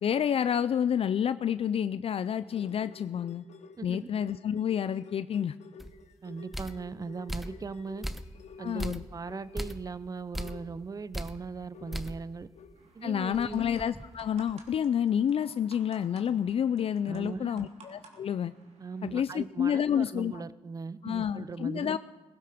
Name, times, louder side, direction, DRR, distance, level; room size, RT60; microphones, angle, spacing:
voice 1, 0.0-3.4 3.8-5.5 8.6-9.0 13.0-18.5 19.0-20.3 21.0-22.0, left 8 dB, 55° left, 13 dB, 0.4 m, -29 dB
sound 1, 2.4-10.0 10.4-13.1 13.6-13.7, left 5 dB, 70° left, 1.2 m, -51 dB
voice 2, 3.8-4.1 6.2-8.1 8.6-12.5 12.9-13.7 17.1-17.7 18.8-22.0, right 4 dB, 30° right, 16 dB, 0.6 m, -39 dB
sound 2, 5.8-6.0 6.5-6.9 7.3-7.6 8.0-8.4 8.8-9.1 9.6-9.9 10.3-10.7 11.1-11.4 11.9-12.3 12.6-12.7 13.2-14.7, equal, ahead, 0.9 m, -38 dB
sound 3, 12.8-19.2, right 3 dB, 65° right, 2.9 m, -56 dB
17.5 x 15.5 x 5.1 m, 1.3 s
cardioid pair, 75°, 12 cm